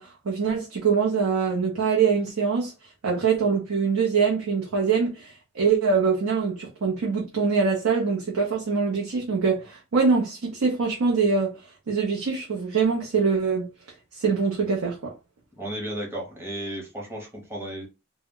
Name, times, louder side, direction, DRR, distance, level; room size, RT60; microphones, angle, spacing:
voice 1, 0.0-2.7 3.0-11.5 11.9-13.7 14.1-15.1, right 5 dB, 90° right, 0.6 m, -24 dB
voice 2, 15.6-17.9, right 1 dB, 10° right, 0.7 m, -34 dB
2.1 x 2.0 x 3.6 m
head